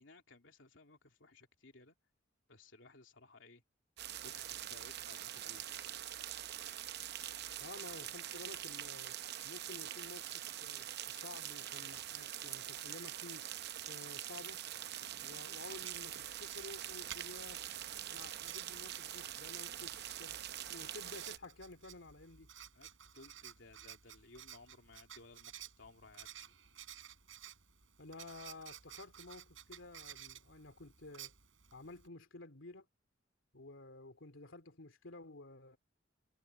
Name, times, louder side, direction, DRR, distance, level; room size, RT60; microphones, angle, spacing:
voice 1, 0.0-2.0 2.5-3.6 4.2-5.6 19.8-19.9 22.7-26.5, left 3 dB, 75° left, 3.1 m, -59 dB
sound 1, 4.0-21.4, right 11 dB, 60° right, 0.7 m, -44 dB
voice 2, 7.6-9.2 9.4-13.4 13.9-14.6 15.2-17.7 18.1-22.5 28.0-31.3 31.7-32.9 33.5-35.8, left 2 dB, 90° left, 2.7 m, -52 dB
Writing, 15.7-32.1, right 10 dB, 80° right, 5.5 m, -55 dB
head